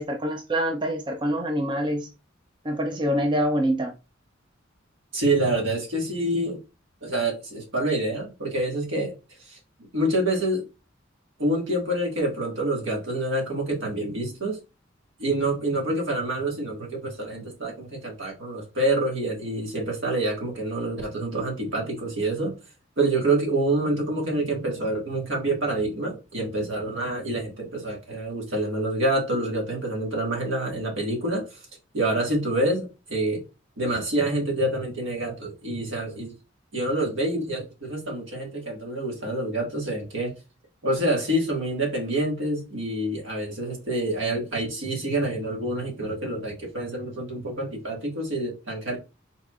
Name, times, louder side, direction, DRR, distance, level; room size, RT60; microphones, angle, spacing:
voice 1, 0.0-2.1 2.6-3.9, equal, 25° right, 0.5 m, -25 dB
voice 2, 5.1-6.6 7.0-9.6 9.9-10.6 11.4-14.6 15.2-22.6 23.0-31.7 31.9-33.4 33.8-36.3 36.7-40.4 40.8-49.0, right 1 dB, 75° right, 1.8 m, -27 dB
4.4 x 4.0 x 2.4 m
head